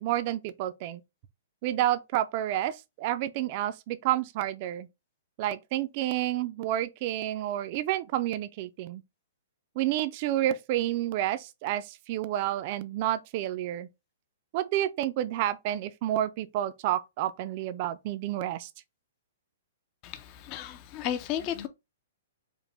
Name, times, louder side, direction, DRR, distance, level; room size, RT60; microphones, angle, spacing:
voice 1, 0.0-1.0 1.6-4.9 5.4-9.0 9.8-13.9 14.5-18.7, right 13 dB, 40° right, 0.4 m, -30 dB
voice 2, 20.0-21.7, left 10 dB, 30° left, 0.4 m, -34 dB
5.0 x 2.1 x 3.3 m
hypercardioid pair, 160°, 0 cm